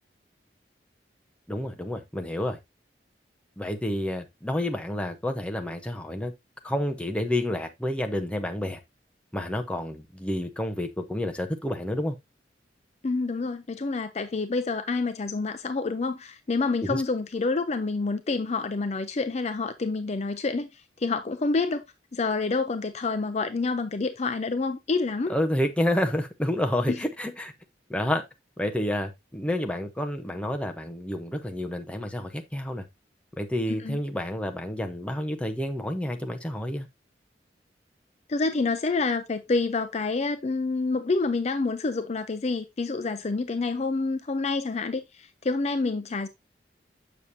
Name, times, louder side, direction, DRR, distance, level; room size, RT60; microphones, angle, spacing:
voice 1, 1.5-2.6 3.6-6.3 6.6-8.8 9.3-12.2 16.8-17.0 25.3-27.5 27.9-28.2 28.6-32.9 33.4-36.9, left 1 dB, 5° left, 0.8 m, -29 dB
voice 2, 13.0-21.8 22.1-25.3 26.9-27.0 33.7-34.0 38.3-46.3, left 3 dB, 40° left, 0.5 m, -28 dB
7.0 x 6.3 x 2.7 m
head